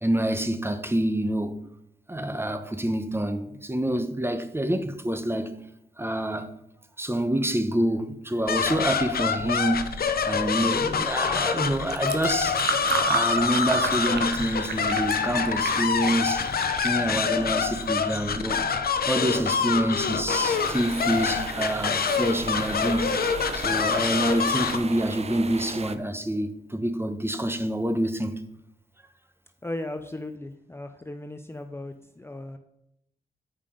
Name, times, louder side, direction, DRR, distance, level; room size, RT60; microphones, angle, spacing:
voice 1, 0.0-1.6 2.1-5.6 6.0-6.5 7.0-9.9 10.2-12.6 13.0-16.5 16.8-18.6 19.1-28.4, right 1 dB, 15° right, 0.9 m, -27 dB
sound 1, 8.5-24.8, left 6 dB, 65° left, 0.8 m, -26 dB
Fill (with liquid), 11.8-18.0, right 6 dB, 80° right, 0.9 m, -33 dB
sound 2, 20.3-26.0, right 4 dB, 40° right, 0.6 m, -37 dB
voice 2, 29.6-32.6, left 1 dB, 15° left, 0.6 m, -36 dB
7.2 x 5.3 x 5.1 m
cardioid pair, 60°, 17 cm